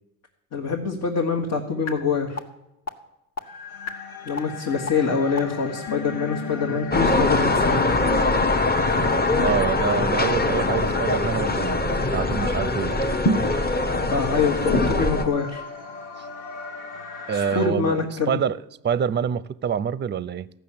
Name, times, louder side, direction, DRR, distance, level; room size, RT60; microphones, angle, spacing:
voice 1, 0.5-2.4 4.2-7.8 14.1-15.6 17.3-18.4, left 5 dB, 65° left, 1.6 m, -25 dB
sound 1, 1.9-2.0 2.4-2.5 2.9-3.0 3.4-3.5 3.9-4.0 4.4-4.5 4.9-5.0 5.4-5.5 5.9-7.6, left 5 dB, 45° left, 1.6 m, -32 dB
sound 2, 3.4-17.7, left 4 dB, 85° left, 1.3 m, -38 dB
sound 3, 6.9-15.3, left 2 dB, 25° left, 1.0 m, -22 dB
voice 2, 9.4-13.0 17.3-20.5, right 7 dB, 30° right, 0.5 m, -26 dB
14.0 x 6.1 x 8.6 m
cardioid pair, 80°, 35 cm